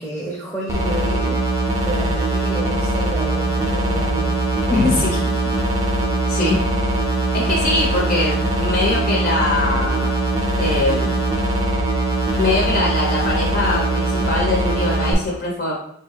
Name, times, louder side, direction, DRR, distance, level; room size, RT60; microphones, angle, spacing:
voice 1, 0.0-1.4 1.7-4.4, right 2 dB, 10° left, -5 dB, 0.9 m, -30 dB
sound 1, 0.7-15.1, right 2 dB, 15° right, 0.6 m, -21 dB
voice 2, 4.7-5.4 6.1-6.6 7.3-10.2 10.6-11.2 12.4-15.7, left 2 dB, 50° left, -3 dB, 1.0 m, -22 dB
5.0 x 2.3 x 3.2 m, 0.73 s
head